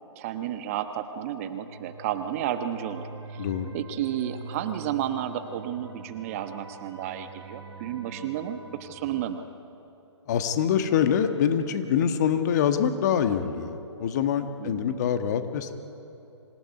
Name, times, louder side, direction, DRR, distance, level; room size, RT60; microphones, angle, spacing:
voice 1, 0.2-3.4 3.7-9.4 14.6-14.9, right 10 dB, 30° right, 9 dB, 1.1 m, -32 dB
sound 1, 1.3-9.2, right 4 dB, 60° right, 4.8 m, -44 dB
voice 2, 3.4-3.7 10.3-15.7, left 8 dB, 35° left, 8 dB, 1.4 m, -25 dB
25.5 x 17.0 x 9.8 m, 2.8 s
figure-of-eight pair, 135°, 15 cm